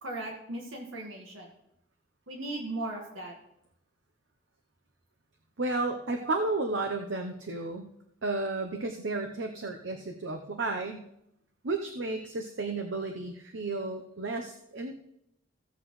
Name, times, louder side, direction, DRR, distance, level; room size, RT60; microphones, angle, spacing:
voice 1, 0.0-1.5 2.3-3.3 6.2-6.3, right 2 dB, 90° right, 0 dB, 1.7 m, -37 dB
voice 2, 5.6-7.9 8.2-11.0 11.6-14.9, right 2 dB, 70° right, 4 dB, 0.8 m, -32 dB
15.5 x 8.0 x 3.1 m, 0.79 s
head